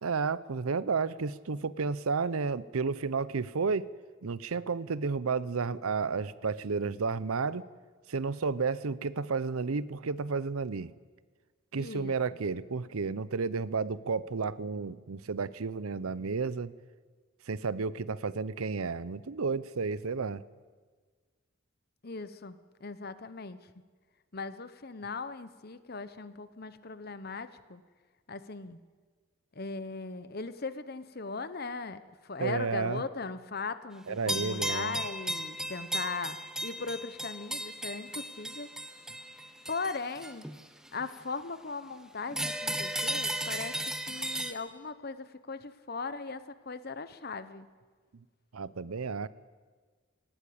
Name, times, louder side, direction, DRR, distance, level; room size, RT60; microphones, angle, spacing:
voice 1, 0.0-3.9 4.2-7.7 8.1-10.9 11.7-16.8 17.5-20.4 32.4-33.0 34.1-35.0 48.5-49.3, right 4 dB, 90° right, 17 dB, 0.7 m, -32 dB
voice 2, 11.8-12.2 22.0-23.7 24.3-27.8 28.3-28.8 29.5-38.7 39.7-40.5 40.9-43.8 44.1-47.7, left 4 dB, 45° left, 13 dB, 0.9 m, -39 dB
sound 1, 34.3-41.0 42.3-44.5, right 1 dB, 5° right, 0.9 m, -35 dB
18.5 x 18.0 x 8.7 m, 1.5 s
head